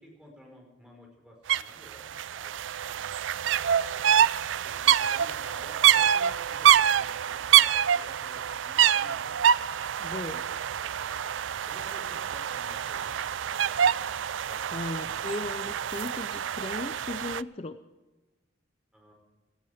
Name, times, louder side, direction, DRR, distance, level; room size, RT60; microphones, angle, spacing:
voice 1, 0.0-3.0 4.6-9.3 10.4-11.2 11.7-14.0 14.4-14.6 18.9-19.1, equal, 5° right, -1 dB, 4.8 m, -53 dB
sound 1, 1.5-1.6 1.9-17.4, right 9 dB, 70° right, 0.4 m, -26 dB
voice 2, 10.0-10.5 14.7-17.8, left 2 dB, 30° left, 9 dB, 0.6 m, -36 dB
17.5 x 15.0 x 5.0 m, 1.2 s
head